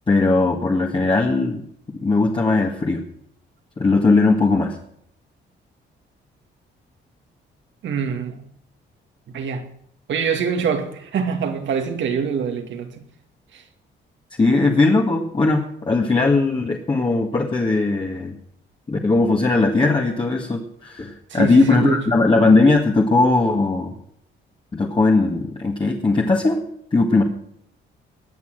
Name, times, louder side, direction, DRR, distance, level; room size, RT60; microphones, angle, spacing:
voice 1, 0.1-1.6 1.9-3.0 3.8-4.8 14.4-18.4 18.9-23.9 24.7-27.2, left 3 dB, 25° left, 1.8 m, -19 dB
voice 2, 7.8-8.5 9.3-9.7 10.1-13.1 13.5-13.6 21.3-22.2, right 6 dB, 70° right, 2.2 m, -25 dB
20.0 x 6.9 x 6.5 m
cardioid pair, 90°, 20 cm